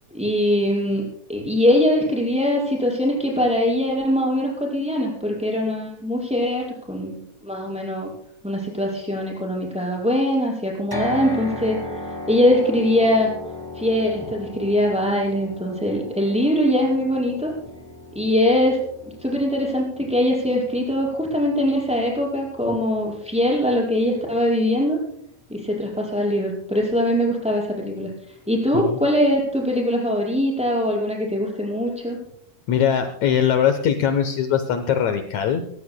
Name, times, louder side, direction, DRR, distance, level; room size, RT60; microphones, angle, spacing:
voice 1, 0.1-8.1 8.4-11.8 12.3-13.3 13.8-17.5 18.1-18.8 19.2-25.0 25.5-28.1 28.5-32.2, left 1 dB, ahead, -3 dB, 5.1 m, -22 dB
sound 1, 10.9-25.0, left 1 dB, 25° right, 0.5 m, -38 dB
voice 2, 32.7-35.7, left 8 dB, 70° left, 8 dB, 2.1 m, -21 dB
22.5 x 17.0 x 2.2 m, 0.70 s
omnidirectional pair, 3.5 m